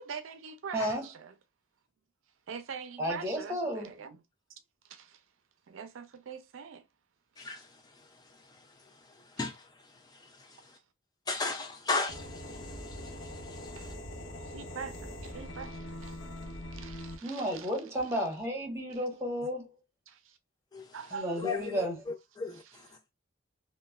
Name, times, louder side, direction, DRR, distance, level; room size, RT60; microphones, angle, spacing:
voice 1, 0.0-1.3 2.5-4.2 4.8-5.2 5.7-6.8 13.7-14.0 14.4-17.7 20.1-20.4 20.9-21.5 22.7-22.8, right 6 dB, 75° right, 0.4 m, -44 dB
voice 2, 0.7-1.0 3.0-3.9 17.2-19.7 21.1-22.0, equal, 15° right, 1.0 m, -32 dB
voice 3, 7.4-10.8 11.3-13.9 20.7-20.9 21.4-22.9, left 3 dB, 20° left, 0.3 m, -38 dB
sound 1, 12.1-17.2, left 1 dB, 65° left, 0.7 m, -42 dB
3.0 x 2.1 x 2.2 m
head